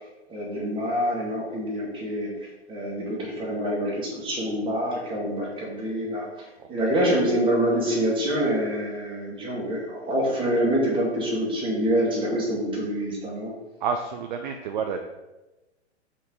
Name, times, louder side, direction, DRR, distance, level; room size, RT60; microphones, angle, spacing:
voice 1, 0.3-2.3 2.7-6.3 6.7-13.5, equal, 15° right, -4 dB, 2.2 m, -26 dB
voice 2, 6.6-6.9 13.8-15.0, right 6 dB, 45° right, 5 dB, 0.6 m, -30 dB
5.4 x 4.3 x 5.3 m, 1.1 s
figure-of-eight pair, 110°, 34 cm